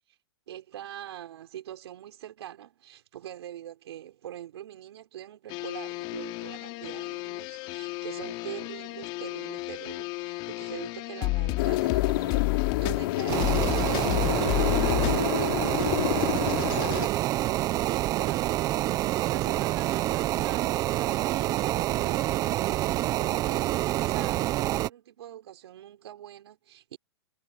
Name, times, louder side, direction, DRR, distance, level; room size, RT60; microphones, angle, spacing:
voice 1, 0.5-27.0, right 12 dB, 70° right, 4.9 m, -43 dB
sound 1, 5.5-15.3, left 23 dB, 35° left, 3.8 m, -31 dB
sound 2, 11.6-17.1, left 17 dB, 55° left, 4.2 m, -29 dB
sound 3, 13.3-24.9, right 15 dB, 25° right, 0.9 m, -27 dB
hypercardioid pair, 145°, 14 cm